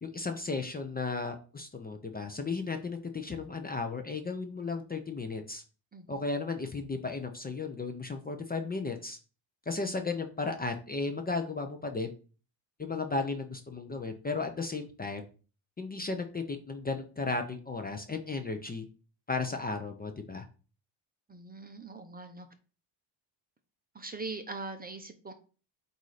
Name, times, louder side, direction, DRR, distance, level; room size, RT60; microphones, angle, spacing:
voice 1, 0.0-5.6 6.1-9.2 9.7-12.1 12.8-15.3 15.8-18.9 19.3-20.4, left 3 dB, 20° left, 5 dB, 0.6 m, -35 dB
voice 2, 21.3-22.5 23.9-25.3, right 3 dB, 20° right, 7 dB, 0.7 m, -41 dB
8.2 x 2.8 x 4.8 m, 0.37 s
cardioid pair, 120°, 50 cm